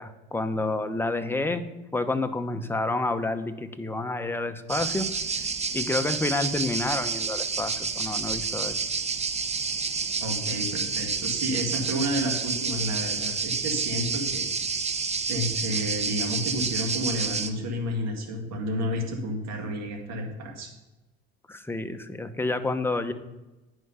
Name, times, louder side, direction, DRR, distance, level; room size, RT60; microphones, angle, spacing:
voice 1, 0.0-1.6 1.9-5.1 5.7-8.8 21.5-23.1, left 2 dB, 5° left, 8 dB, 0.9 m, -29 dB
sound 1, 4.7-17.5, right 5 dB, 20° right, 0.8 m, -29 dB
voice 2, 10.2-14.5 15.3-20.7, equal, 60° right, 2 dB, 2.0 m, -31 dB
9.5 x 4.9 x 5.6 m, 1.0 s
supercardioid pair, 75°, 30 cm